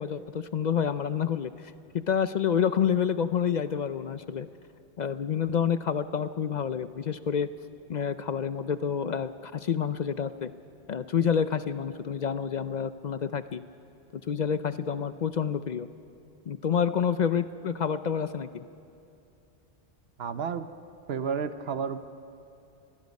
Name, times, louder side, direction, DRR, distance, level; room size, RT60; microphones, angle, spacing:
voice 1, 0.0-1.5 1.9-4.5 5.0-7.5 7.9-10.5 10.9-13.6 14.3-15.9 16.5-18.6, left 7 dB, 55° left, 12 dB, 0.5 m, -28 dB
voice 2, 20.2-20.7 21.1-22.0, right 6 dB, 65° right, 11 dB, 1.0 m, -31 dB
25.0 x 20.0 x 5.3 m, 2.8 s
omnidirectional pair, 1.1 m